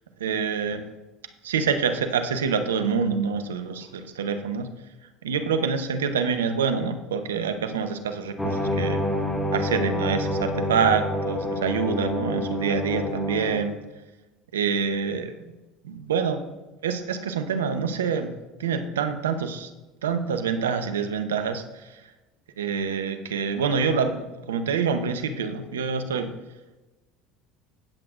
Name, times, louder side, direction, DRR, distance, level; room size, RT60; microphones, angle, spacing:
voice 1, 0.2-0.8 1.4-4.7 5.2-9.0 9.5-13.7 14.5-15.3 15.8-16.4 16.8-18.3 18.6-19.7 20.0-22.0 22.6-26.3, right 6 dB, 90° right, 8 dB, 0.8 m, -26 dB
sound 1, 8.4-13.6, left 1 dB, 10° left, 2.2 m, -27 dB
17.5 x 7.8 x 2.5 m, 1.1 s
hypercardioid pair, 75°, 0 cm